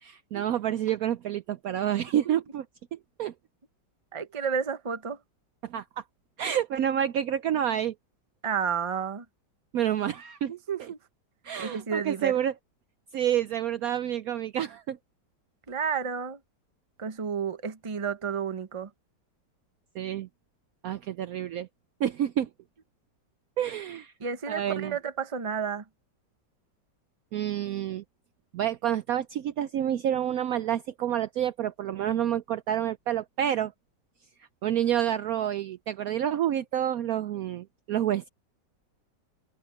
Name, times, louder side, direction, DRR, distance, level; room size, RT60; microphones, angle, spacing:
voice 1, 0.0-2.6 2.9-3.3 5.6-6.0 6.4-7.9 9.7-10.5 10.8-10.9 11.4-12.5 13.1-15.0 20.0-20.3 20.8-21.7 22.0-22.5 23.6-24.1 24.5-24.9 27.3-28.0 28.5-33.7 34.6-38.3, right 10 dB, 70° right, 0.9 m, -28 dB
voice 2, 4.1-5.2 8.4-9.2 10.5-11.0 11.6-12.4 15.7-16.4 17.0-18.9 24.2-25.8, right 6 dB, 25° right, 0.8 m, -31 dB
open air
omnidirectional pair, 1.9 m